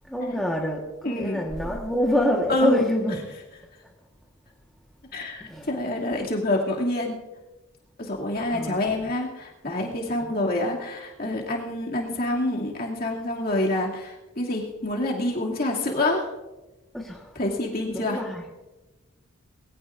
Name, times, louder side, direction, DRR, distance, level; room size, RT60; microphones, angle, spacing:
voice 1, 0.1-3.2 5.4-5.7 8.5-9.0 10.2-10.3 16.9-17.3 17.9-18.4, equal, ahead, -2 dB, 1.4 m, -27 dB
voice 2, 1.0-1.5 2.5-2.9 5.1-7.2 8.0-16.3 17.3-18.2, left 1 dB, 45° left, -2 dB, 2.6 m, -27 dB
21.0 x 16.0 x 2.6 m, 1.1 s
head